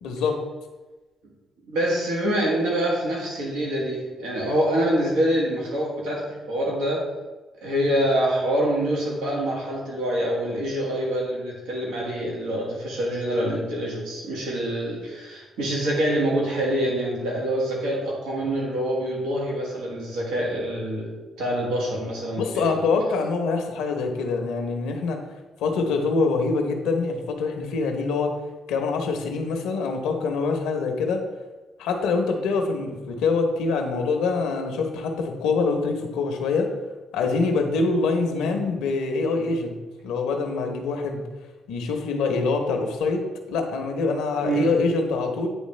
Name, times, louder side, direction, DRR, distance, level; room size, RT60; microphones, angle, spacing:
voice 1, 0.0-0.4 22.4-25.2 25.6-28.3 28.7-31.2 31.8-36.7 37.1-41.2 41.7-43.2 43.5-45.5, left 4 dB, 90° left, 4 dB, 0.8 m, -25 dB
voice 2, 1.7-7.1 7.6-22.7 38.3-38.5 44.4-44.7, right 1 dB, 90° right, -3 dB, 1.5 m, -25 dB
9.4 x 3.3 x 3.2 m, 1.2 s
supercardioid pair, 70°, 0 cm